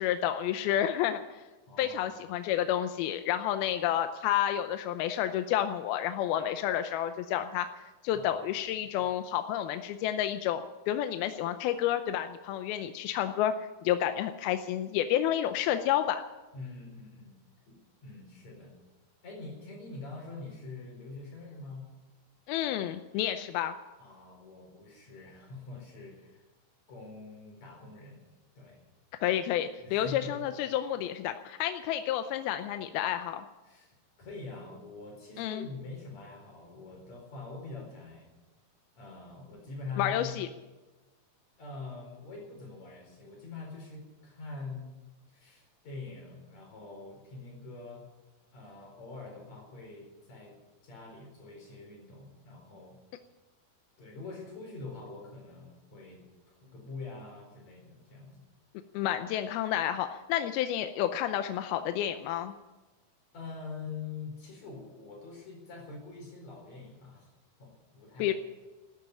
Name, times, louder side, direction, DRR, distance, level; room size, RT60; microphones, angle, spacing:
voice 1, 0.0-1.4 1.8-7.7 8.0-13.5 13.8-16.2 22.5-23.7 29.2-33.5 35.4-35.7 40.0-40.5 58.9-62.5 68.2-68.3, left 11 dB, 80° left, 8 dB, 2.6 m, -30 dB
voice 2, 1.7-2.2 3.6-3.9 8.1-8.5 9.0-9.1 16.5-18.8 19.2-21.9 24.0-26.5 26.9-28.2 28.6-28.8 29.8-30.4 33.6-38.3 39.0-40.5 41.6-44.9 45.3-48.1 48.5-50.6 50.8-53.0 54.0-58.4 63.3-67.3 67.6-68.3, left 3 dB, 45° left, 0 dB, 5.5 m, -44 dB
14.0 x 10.5 x 9.8 m, 1.1 s
omnidirectional pair, 4.5 m